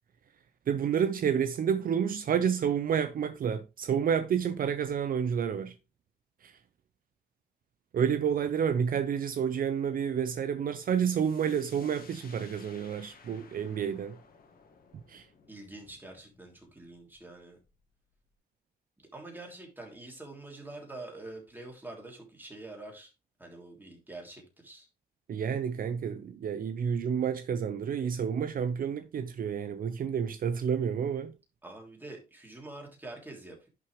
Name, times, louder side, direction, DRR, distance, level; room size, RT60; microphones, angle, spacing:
voice 1, 0.7-5.7 6.4-6.6 7.9-14.2 15.1-15.3 25.3-31.3, right 7 dB, 60° right, 0.7 m, -29 dB
voice 2, 7.9-8.3 15.5-17.6 19.0-23.1 23.4-24.9 31.6-33.7, right 2 dB, 10° right, 3.2 m, -46 dB
sound 1, 10.7-18.3, left 5 dB, 65° left, 1.9 m, -58 dB
11.0 x 5.9 x 3.2 m
cardioid pair, 115°, 17 cm